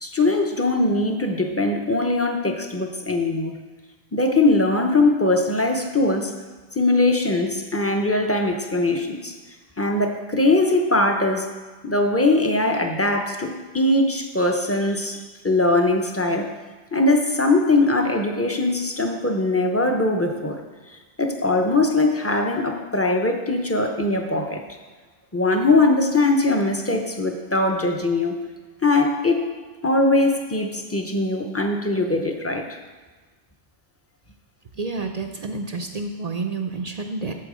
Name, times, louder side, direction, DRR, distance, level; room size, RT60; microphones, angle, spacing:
voice 1, 0.0-3.5 4.1-6.3 6.8-9.3 9.8-11.5 11.8-16.5 16.9-20.6 21.2-24.6 25.3-28.4 28.8-29.5 29.8-32.7, left 2 dB, 15° left, 3 dB, 0.6 m, -21 dB
voice 2, 34.8-37.3, right 3 dB, 50° right, 5 dB, 0.5 m, -29 dB
8.6 x 7.3 x 5.0 m, 1.3 s
omnidirectional pair, 1.2 m